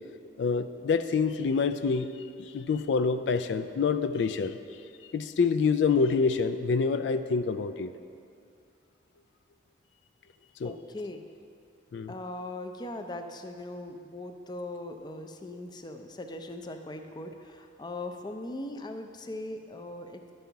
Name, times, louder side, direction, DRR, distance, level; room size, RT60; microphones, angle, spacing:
voice 1, 0.4-2.1 2.4-4.6 5.1-7.9 10.6-10.7 11.9-12.1, left 5 dB, 90° left, 11 dB, 0.4 m, -26 dB
voice 2, 10.6-11.2 12.1-20.3, left 1 dB, 25° left, 6 dB, 0.5 m, -39 dB
11.5 x 5.5 x 4.5 m, 2.4 s
head